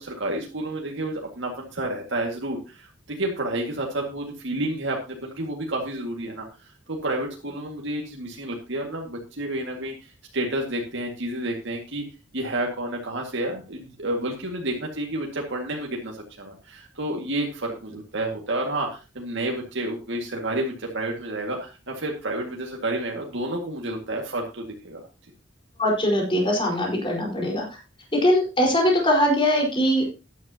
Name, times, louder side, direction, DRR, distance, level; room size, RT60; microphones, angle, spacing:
voice 1, 0.0-12.0 12.3-25.1, right 1 dB, 65° right, 0 dB, 2.0 m, -30 dB
voice 2, 25.8-27.8 28.2-30.0, equal, 25° left, -1 dB, 4.6 m, -21 dB
13.5 x 10.5 x 2.9 m, 0.31 s
head